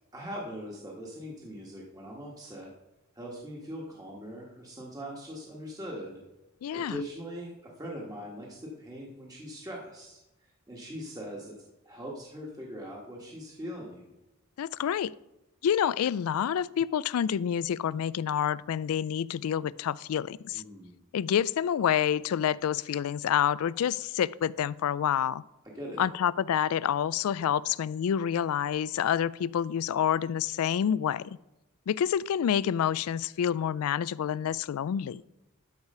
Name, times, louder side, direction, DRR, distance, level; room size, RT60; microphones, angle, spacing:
voice 1, 0.1-2.7 3.1-6.2 6.7-7.5 7.8-10.2 10.7-11.5 11.8-14.1 20.5-20.9 25.7-26.1, equal, 15° right, -3 dB, 1.5 m, -41 dB
voice 2, 6.6-7.0 14.6-15.1 15.6-20.6 21.1-25.4 26.0-31.4 31.9-35.2, left 9 dB, 75° left, 20 dB, 0.3 m, -28 dB
12.5 x 4.9 x 5.5 m, 0.95 s
head